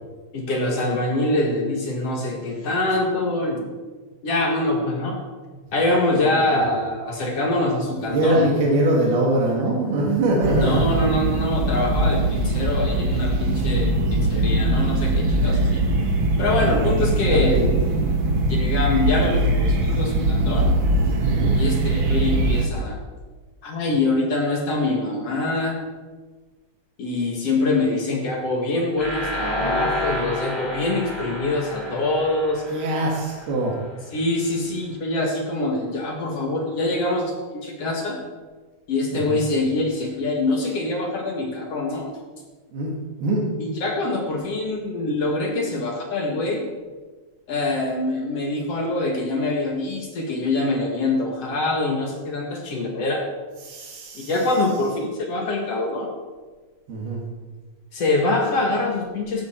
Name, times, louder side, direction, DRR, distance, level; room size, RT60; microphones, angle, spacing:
voice 1, 0.3-3.7 4.2-5.2 5.7-8.5 10.5-15.8 16.4-17.6 18.5-20.8 21.6-23.0 23.6-25.8 27.0-32.6 34.1-38.2 38.9-42.1 43.6-46.7 47.5-53.3 54.3-56.1 57.9-59.5, left 2 dB, 50° left, 1 dB, 2.3 m, -24 dB
voice 2, 6.1-6.6 8.0-10.9 16.6-17.6 21.2-21.6 32.7-33.7 39.1-39.4 42.7-43.0 43.2-43.5 53.6-54.3 56.9-57.2, right 1 dB, 90° right, -3 dB, 4.0 m, -23 dB
sound 1, 10.4-22.7, right 1 dB, 65° right, 1.2 m, -21 dB
sound 2, 29.0-33.8, equal, 5° left, 4.6 m, -30 dB
15.5 x 13.0 x 4.5 m, 1.4 s
omnidirectional pair, 4.3 m